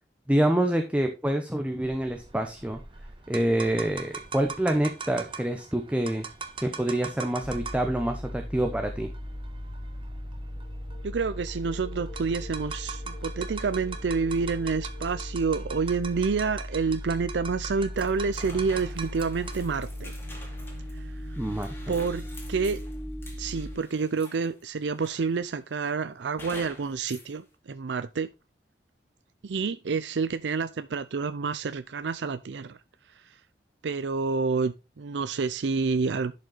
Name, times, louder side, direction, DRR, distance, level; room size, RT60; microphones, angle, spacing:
voice 1, 0.3-2.8 3.3-6.3 6.6-9.1 21.4-21.7, right 1 dB, 5° right, 0.8 m, -26 dB
sound 1, 1.8-19.7, right 5 dB, 30° right, 1.2 m, -42 dB
sound 2, 7.4-23.8, equal, 55° left, 2.2 m, -38 dB
voice 2, 11.0-20.1 20.9-21.2 21.9-22.8 23.4-28.3 29.4-32.8 33.1-33.3 33.8-36.3, right 4 dB, 85° right, 0.5 m, -28 dB
sound 3, 17.9-24.6 25.0-25.6 26.4-27.3, left 1 dB, 15° left, 2.6 m, -47 dB
11.5 x 5.4 x 4.0 m
head